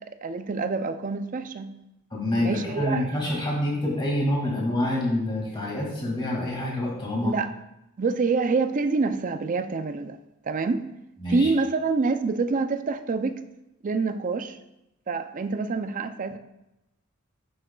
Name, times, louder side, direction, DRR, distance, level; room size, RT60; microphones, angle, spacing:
voice 1, 0.2-1.8 2.4-3.0 7.2-7.5 8.0-10.2 10.4-10.9 11.3-13.4 13.8-14.6 15.1-16.4, right 4 dB, 35° right, 10 dB, 0.4 m, -26 dB
voice 2, 2.1-7.3 11.2-11.5, left 1 dB, 20° left, -4 dB, 2.1 m, -27 dB
11.0 x 6.2 x 2.3 m, 0.92 s
head